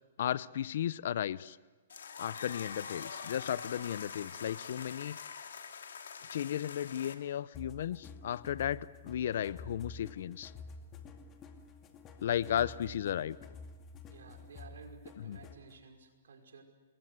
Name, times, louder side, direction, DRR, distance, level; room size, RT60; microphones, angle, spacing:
voice 1, 0.2-1.6 2.2-5.4 6.3-10.5 12.2-13.4 15.2-15.4, left 10 dB, 65° left, 18 dB, 0.8 m, -35 dB
sound 1, 1.9-7.1, left 6 dB, 90° left, 2.8 m, -44 dB
sound 2, 7.5-15.7, left 4 dB, 25° left, 2.2 m, -50 dB
voice 2, 12.5-13.0 14.1-16.6, right 5 dB, 85° right, 4 dB, 5.3 m, -54 dB
28.5 x 21.5 x 8.1 m, 1.3 s
hypercardioid pair, 155°, 0 cm